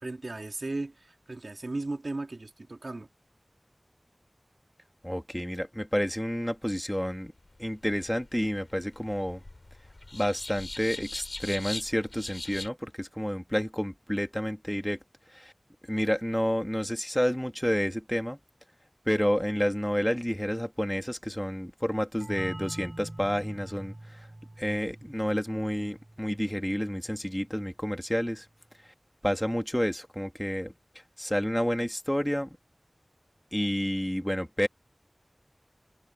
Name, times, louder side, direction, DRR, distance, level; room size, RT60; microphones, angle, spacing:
voice 1, 0.0-3.1, right 2 dB, 80° right, 2.5 m, -36 dB
voice 2, 5.0-7.3 7.6-9.4 10.1-15.0 15.3-15.5 15.9-18.4 19.1-24.3 24.6-28.4 29.2-30.7 31.2-32.5 33.5-34.7, equal, 10° left, 2.5 m, -29 dB
sound 1, 7.4-12.7, left 2 dB, 65° left, 3.2 m, -42 dB
sound 2, 22.2-27.7, right 1 dB, 35° right, 2.1 m, -45 dB
wide cardioid pair, 45°, 0 cm